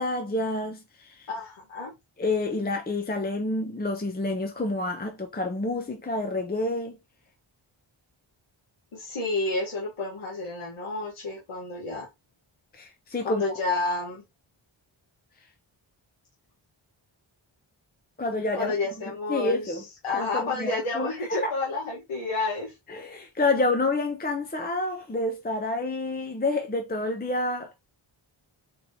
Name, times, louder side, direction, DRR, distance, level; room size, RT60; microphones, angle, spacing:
voice 1, 0.0-1.3 2.2-7.0 12.7-13.4 18.2-18.7 19.1-19.8 20.1-21.5 22.9-27.8, left 2 dB, 20° left, 0.6 m, -28 dB
voice 2, 1.3-1.9 8.9-12.1 13.2-14.2 18.5-19.8 20.0-22.7, left 3 dB, 90° left, 1.3 m, -30 dB
4.4 x 3.3 x 2.7 m
wide cardioid pair, 60°, 49 cm